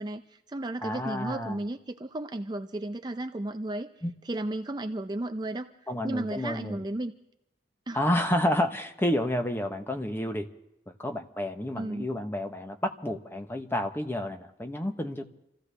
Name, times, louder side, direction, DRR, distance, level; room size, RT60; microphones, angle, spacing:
voice 1, 0.0-3.9 4.2-5.7 6.0-7.1 7.9-8.0 11.8-12.1, right 1 dB, 25° right, 6 dB, 0.5 m, -34 dB
voice 2, 0.8-1.6 4.0-4.1 5.9-6.8 7.9-10.5 11.0-15.3, left 1 dB, 10° left, 6 dB, 0.9 m, -30 dB
27.5 x 15.0 x 3.3 m, 0.86 s
head